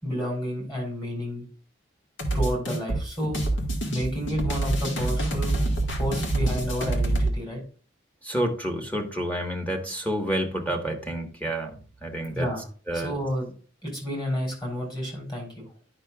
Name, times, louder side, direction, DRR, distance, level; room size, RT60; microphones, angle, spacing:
voice 1, 0.0-1.4 2.3-3.4 3.9-5.6 5.9-7.6 12.3-12.6 12.9-13.5 13.8-15.6, equal, 25° left, 0 dB, 4.1 m, -30 dB
sound 1, 2.2-7.3, right 1 dB, 70° left, 1.7 m, -26 dB
voice 2, 8.2-11.8 12.0-12.5 12.9-13.1, right 1 dB, 10° left, 1 dB, 1.4 m, -29 dB
10.5 x 5.8 x 2.3 m, 0.40 s
head